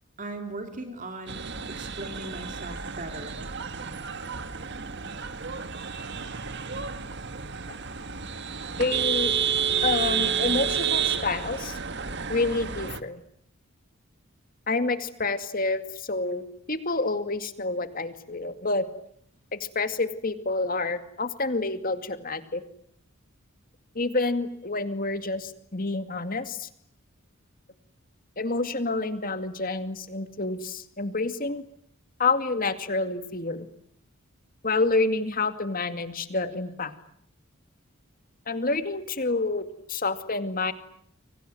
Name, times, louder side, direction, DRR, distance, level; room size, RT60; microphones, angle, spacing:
voice 1, 0.2-3.4, right 2 dB, 35° right, 5 dB, 3.1 m, -39 dB
sound 1, 1.3-13.0, right 7 dB, 55° right, 1.7 m, -30 dB
voice 2, 8.8-9.3 9.8-11.8 12.3-13.2 14.7-18.9 19.5-22.6 23.9-26.7 28.4-31.6 32.2-33.7 34.6-36.9 38.5-40.7, left 3 dB, 40° left, 9 dB, 2.3 m, -28 dB
30.0 x 25.0 x 7.8 m, 0.68 s
head